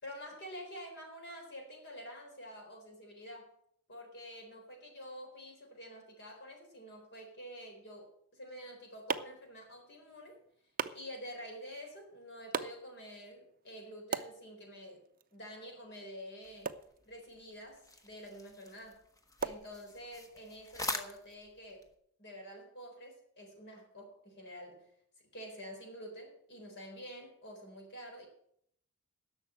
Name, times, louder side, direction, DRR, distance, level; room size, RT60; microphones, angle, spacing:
voice 1, 0.0-3.5 3.9-10.4 10.9-15.0 15.3-16.7 17.0-19.0 19.4-21.8 22.2-24.9 25.3-28.3, equal, 50° left, 2 dB, 3.9 m, -48 dB
sound 1, 8.4-20.4, right 5 dB, 40° right, 0.6 m, -44 dB
sound 2, 16.4-21.9, left 2 dB, 15° left, 1.0 m, -45 dB
11.0 x 6.7 x 8.6 m, 0.68 s
head